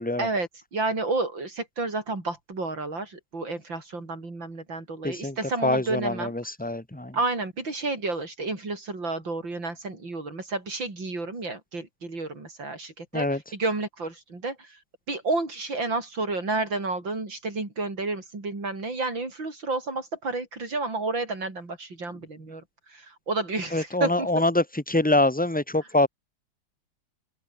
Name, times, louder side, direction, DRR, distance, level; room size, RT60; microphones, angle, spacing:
voice 1, 0.2-6.3 7.1-14.8 15.1-22.6 22.9-24.3, right 3 dB, 85° right, 6.6 m, -31 dB
voice 2, 5.0-5.4 5.6-7.2 13.1-13.4 23.7-26.1, left 2 dB, 5° left, 2.2 m, -25 dB
open air
omnidirectional pair, 2.0 m